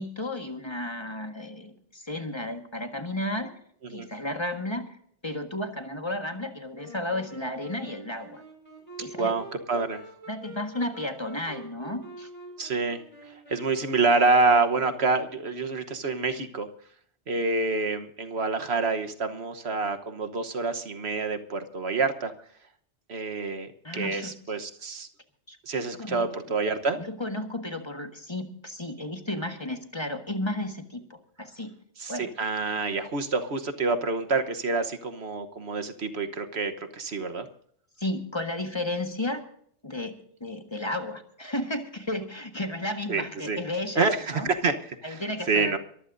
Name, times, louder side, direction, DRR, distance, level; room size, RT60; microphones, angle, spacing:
voice 1, 0.0-3.5 3.9-5.0 5.2-8.4 9.0-9.3 10.3-12.3 23.8-24.3 25.5-25.6 26.0-26.2 27.0-31.7 32.1-32.3 38.0-39.4 39.8-40.1 40.4-44.5 45.0-45.8, left 1 dB, 25° left, 5 dB, 1.6 m, -33 dB
Wind instrument woodwind instrument, 6.7-15.5, right 1 dB, 30° right, 5.3 m, -46 dB
voice 2, 9.2-10.0 12.6-13.0 13.3-16.7 17.3-22.3 23.1-25.1 25.7-27.0 32.0-37.5 43.1-43.6 43.9-45.2 45.5-45.8, right 3 dB, 65° right, 7 dB, 1.4 m, -27 dB
23.5 x 15.0 x 2.6 m, 0.62 s
omnidirectional pair, 1.2 m